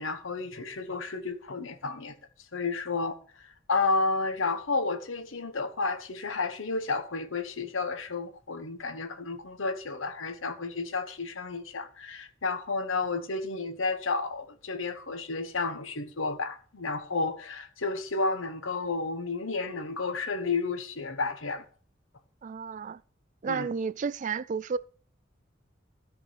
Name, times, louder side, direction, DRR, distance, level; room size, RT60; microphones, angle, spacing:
voice 1, 0.0-2.2 2.5-21.6 23.5-23.7, left 3 dB, 90° left, 1.1 m, -31 dB
voice 2, 22.4-23.0 23.4-24.8, right 5 dB, 40° right, 0.3 m, -32 dB
13.0 x 4.9 x 5.8 m
head